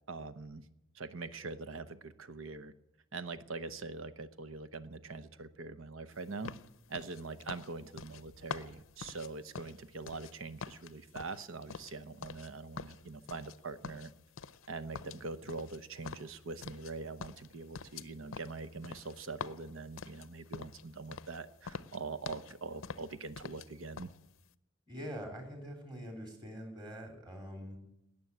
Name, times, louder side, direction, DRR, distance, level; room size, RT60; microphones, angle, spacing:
voice 1, 0.1-0.6 0.9-2.7 3.1-6.5 6.9-14.1 14.7-24.1, right 3 dB, 70° right, 13 dB, 0.9 m, -43 dB
sound 1, 6.4-10.3 10.6-12.5 12.8-13.6 13.8-14.7 14.9-16.9 17.2-20.8 21.1-21.4 21.6-22.5 22.8-23.7 24.0-24.2, left 5 dB, 70° left, 0.6 m, -45 dB
voice 2, 24.9-27.8, equal, 20° right, 2 dB, 3.5 m, -44 dB
18.5 x 7.0 x 9.8 m, 0.84 s
head